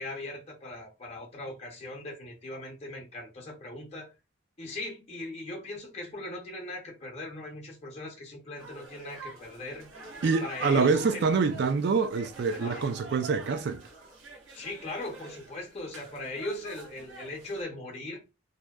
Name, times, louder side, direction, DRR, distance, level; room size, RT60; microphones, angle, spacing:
voice 1, 0.0-4.1 4.6-9.9 10.2-11.3 12.5-12.9 14.5-18.2, left 2 dB, 35° left, 0.7 m, -39 dB
sound 1, 8.6-17.6, right 2 dB, 85° right, 0.7 m, -47 dB
voice 2, 10.2-13.8, right 4 dB, 55° right, 0.3 m, -26 dB
2.7 x 2.1 x 2.2 m
head